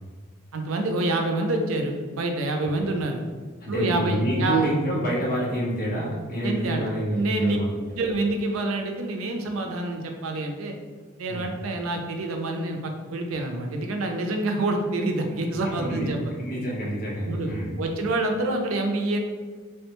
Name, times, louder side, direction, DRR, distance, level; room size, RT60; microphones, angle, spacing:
voice 1, 0.5-3.2 3.7-4.7 6.4-7.6 7.9-10.7 11.2-16.2 17.3-17.5 17.8-19.2, right 2 dB, 80° right, 3 dB, 0.4 m, -27 dB
voice 2, 3.6-7.8 11.3-11.5 15.8-16.1 16.4-17.8, right 1 dB, 45° left, -6 dB, 0.8 m, -27 dB
3.3 x 2.1 x 2.9 m, 1.5 s
head